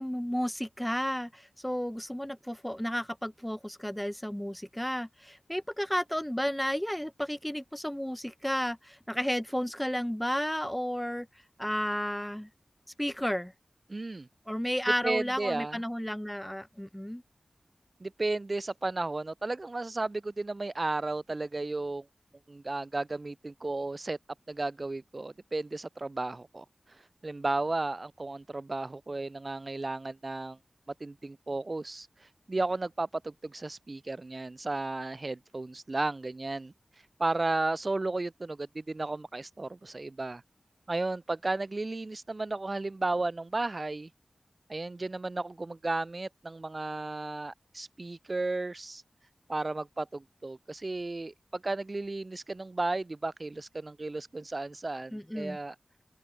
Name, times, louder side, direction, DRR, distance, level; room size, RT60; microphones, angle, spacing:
voice 1, 0.0-11.3 11.6-12.5 13.0-13.5 14.5-17.2 55.1-55.6, equal, 5° left, 2.6 m, -32 dB
voice 2, 13.9-14.3 15.0-15.8 18.0-22.1 22.5-24.2 24.5-26.7 27.2-30.6 31.0-32.1 32.5-36.7 37.2-40.4 40.9-44.1 44.7-49.0 49.5-55.8, right 2 dB, 40° right, 1.8 m, -34 dB
open air
wide cardioid pair, 85°, 0 cm